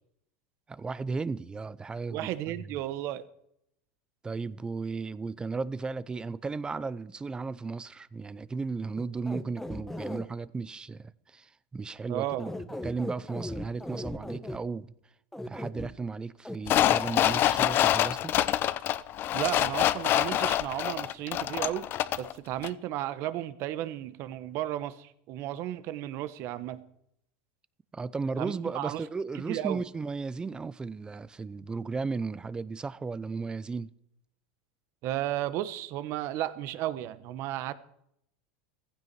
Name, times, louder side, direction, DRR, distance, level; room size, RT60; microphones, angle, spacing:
voice 1, 0.7-2.8 4.2-14.9 15.4-18.3 27.9-33.9, right 4 dB, 15° right, 0.6 m, -35 dB
voice 2, 2.1-3.2 12.1-12.5 19.3-21.9 22.2-26.8 28.4-29.0 29.5-29.8 35.0-37.7, right 13 dB, 50° right, 1.2 m, -34 dB
sound 1, 9.0-10.2 12.3-14.6 15.3-15.9 16.4-16.6, left 1 dB, 5° left, 1.2 m, -37 dB
sound 2, 16.7-22.3 22.6-22.7, left 12 dB, 40° left, 0.7 m, -26 dB
15.5 x 15.0 x 4.7 m
supercardioid pair, 120°, 6 cm